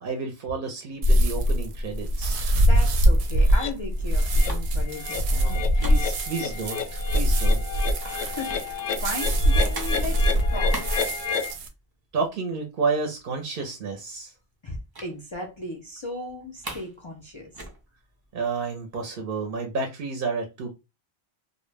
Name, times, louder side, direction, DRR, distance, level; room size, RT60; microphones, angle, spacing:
voice 1, 0.0-2.4 5.4-7.6 12.1-14.3 18.3-20.7, right 4 dB, 60° right, 0.7 m, -31 dB
sound 1, 0.9-6.7 7.0-11.9 12.2-12.5 12.8-12.9 13.2-13.9 14.9-15.2 15.5-15.6 16.0-17.0 17.2-19.0, right 2 dB, 30° right, 0.5 m, -43 dB
sound 2, 1.0-11.7, equal, 90° right, 0.9 m, -23 dB
voice 2, 2.5-5.4 8.0-10.8 14.6-17.5, left 2 dB, 45° left, 0.4 m, -36 dB
sound 3, 3.5-3.7 4.2-4.5 4.8-11.5, left 6 dB, 85° left, 0.8 m, -32 dB
2.1 x 2.1 x 3.2 m
omnidirectional pair, 1.1 m